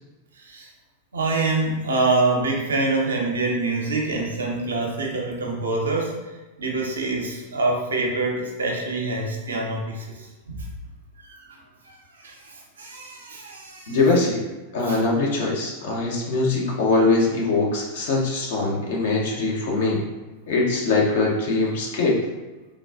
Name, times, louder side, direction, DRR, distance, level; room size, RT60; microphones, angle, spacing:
voice 1, 0.4-0.7 1.1-6.2 6.6-10.7 11.2-11.6 11.8-14.0 14.9-15.0, right 3 dB, 70° right, -1 dB, 0.6 m, -26 dB
voice 2, 13.9-14.4 14.7-20.0 20.5-22.2, left 3 dB, 55° left, -2 dB, 0.7 m, -22 dB
3.4 x 2.2 x 2.4 m, 1.2 s
figure-of-eight pair, 90°, 0 cm